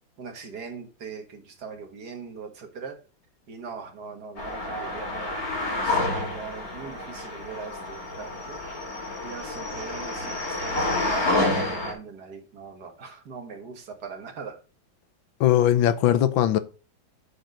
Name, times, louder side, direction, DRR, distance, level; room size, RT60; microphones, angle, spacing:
voice 1, 0.2-3.0 3.5-5.4 5.7-8.7 9.2-14.6, right 5 dB, 55° right, 1.9 m, -40 dB
sound 1, 4.4-11.9, left 2 dB, 45° left, 3.3 m, -29 dB
voice 2, 15.4-16.6, left 11 dB, 85° left, 1.6 m, -20 dB
7.8 x 4.5 x 6.3 m
omnidirectional pair, 2.1 m